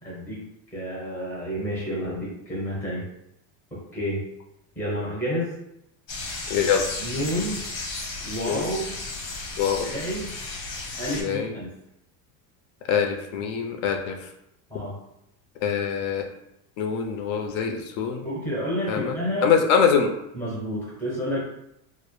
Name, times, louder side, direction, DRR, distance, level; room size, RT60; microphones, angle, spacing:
voice 1, 0.0-3.1 3.7-4.2 4.8-5.5 7.0-7.6 8.2-8.9 9.8-10.3 11.0-11.7 14.7-15.0 18.2-19.5 20.3-21.4, equal, 5° left, -6 dB, 0.5 m, -30 dB
sound 1, 6.1-11.2, left 3 dB, 85° left, 1.0 m, -34 dB
voice 2, 6.5-6.8 8.5-8.6 9.6-9.9 11.2-11.5 12.9-14.2 15.6-16.3 16.8-18.3 18.9-19.1 19.4-20.1, left 7 dB, 65° left, 3 dB, 0.5 m, -23 dB
2.0 x 2.0 x 2.9 m, 0.82 s
supercardioid pair, 150°, 46 cm